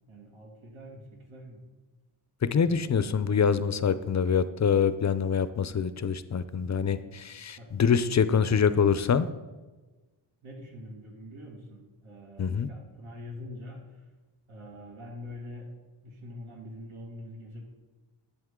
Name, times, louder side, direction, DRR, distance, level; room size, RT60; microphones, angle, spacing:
voice 1, 0.1-1.6 2.5-3.4 6.9-7.1 7.6-8.2 8.5-8.6 10.4-14.0 14.5-15.8 16.0-17.8, left 1 dB, 85° right, -1 dB, 2.5 m, -45 dB
voice 2, 2.4-9.3 12.4-12.7, left 6 dB, 40° left, 14 dB, 0.4 m, -25 dB
11.0 x 8.1 x 3.7 m, 1.2 s
wide cardioid pair, 130°, 48 cm